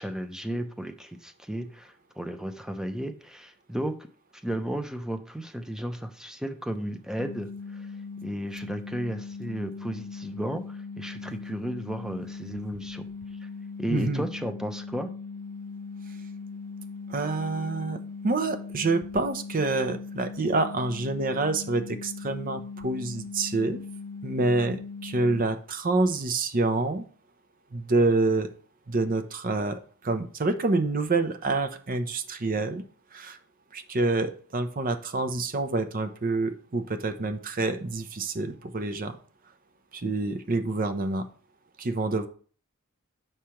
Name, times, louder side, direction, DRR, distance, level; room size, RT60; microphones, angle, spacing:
voice 1, 0.0-4.1 4.4-7.9 8.2-13.1 13.4-13.5 13.8-15.1, right 1 dB, 5° right, 7 dB, 0.6 m, -34 dB
sound 1, 7.2-25.4, left 4 dB, 85° left, 0.7 m, -39 dB
voice 2, 13.9-14.2 17.1-18.0 18.2-23.8 24.2-27.1 27.7-28.5 28.9-32.8 33.1-33.4 33.7-39.2 39.9-41.2 41.8-42.3, right 3 dB, 45° right, 9 dB, 0.7 m, -27 dB
7.4 x 3.3 x 5.7 m, 0.43 s
head